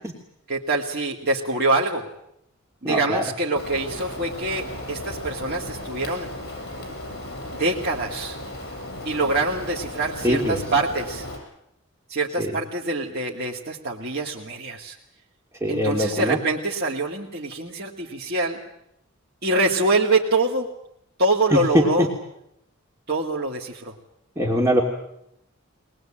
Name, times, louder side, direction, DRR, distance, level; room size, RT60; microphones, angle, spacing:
voice 1, 0.5-2.1 2.8-6.3 7.6-8.4 9.0-11.3 12.1-15.0 15.7-18.6 19.4-20.7 21.2-22.1 23.1-24.0, right 2 dB, 50° right, -3 dB, 2.3 m, -25 dB
voice 2, 2.8-3.2 10.2-10.6 12.4-12.5 15.6-16.4 21.5-22.1 24.4-24.8, equal, 15° right, 0 dB, 2.9 m, -21 dB
Rain, 3.6-11.4, left 1 dB, 50° left, 7.7 m, -35 dB
23.0 x 20.5 x 8.9 m, 0.78 s
head